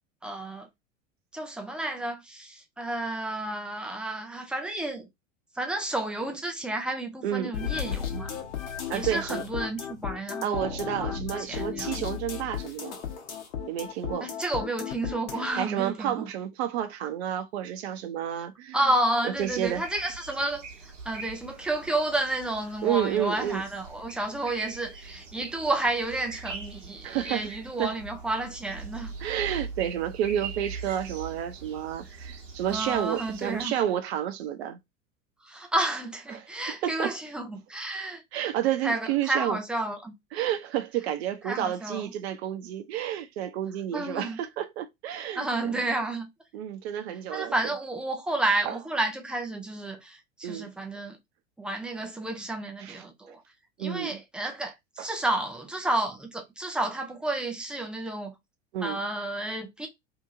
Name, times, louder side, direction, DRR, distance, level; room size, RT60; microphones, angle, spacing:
voice 1, 0.2-0.7 1.3-5.1 5.6-8.3 8.9-12.0 14.2-16.3 18.7-20.6 21.1-29.1 32.7-33.7 35.4-38.2 38.8-40.1 41.5-42.1 43.9-44.4 45.4-46.3 47.3-51.2 51.6-53.4 53.8-58.3 58.8-59.9, right 2 dB, ahead, 0.4 m, -31 dB
voice 2, 7.2-7.5 8.9-9.4 10.4-13.0 13.7-14.3 15.5-18.8 19.2-19.9 22.8-23.6 27.0-27.5 27.8-27.9 29.2-34.8 36.3-36.5 36.8-37.1 38.3-39.6 40.3-45.8 46.5-47.5 48.7-48.8 50.4-50.7 52.8-53.0 53.8-54.2 55.0-55.1 58.7-59.0, right 10 dB, 55° right, 0.7 m, -30 dB
sound 1, 7.5-15.5, left 8 dB, 60° left, 1.0 m, -34 dB
sound 2, 19.4-33.7, right 4 dB, 70° right, 1.0 m, -42 dB
2.8 x 2.6 x 2.4 m
figure-of-eight pair, 85°, 39 cm